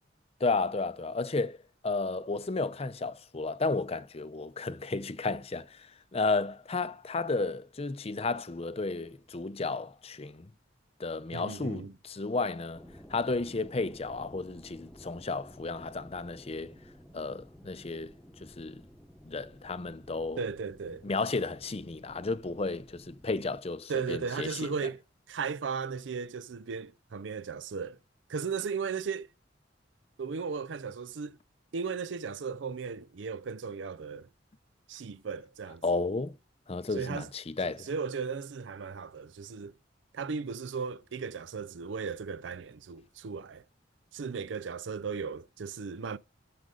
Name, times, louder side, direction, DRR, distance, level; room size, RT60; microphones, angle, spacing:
voice 1, 0.4-1.6 1.8-5.9 6.1-10.5 11.0-12.8 13.1-16.7 17.1-18.1 18.4-18.8 19.3-20.4 21.0-24.7 35.8-36.3 36.7-37.9, left 3 dB, 35° left, 0.6 m, -33 dB
voice 2, 11.3-11.9 20.4-21.1 23.9-25.0 25.3-28.0 28.3-29.3 30.2-31.4 31.7-34.3 34.9-35.8 36.9-37.3 37.8-39.7 40.1-43.6 44.1-46.2, right 5 dB, 75° right, 0.5 m, -36 dB
sound 1, 12.7-23.6, equal, 5° left, 1.0 m, -53 dB
12.5 x 5.2 x 3.8 m
head